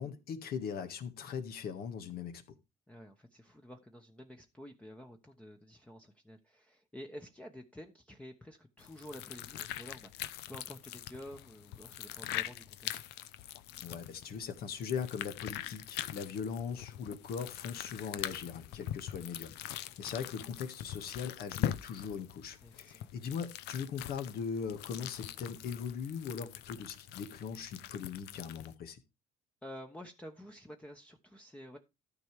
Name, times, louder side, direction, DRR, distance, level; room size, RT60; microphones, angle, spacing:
voice 1, 0.0-2.4 13.8-29.0, left 6 dB, 65° left, 1.6 m, -40 dB
voice 2, 2.9-13.1 18.7-18.8 19.9-20.1 22.6-23.1 29.6-31.8, equal, 5° left, 1.0 m, -50 dB
sound 1, 8.8-28.7, left 12 dB, 85° left, 0.7 m, -43 dB
13.0 x 5.3 x 4.7 m
cardioid pair, 110°, 17 cm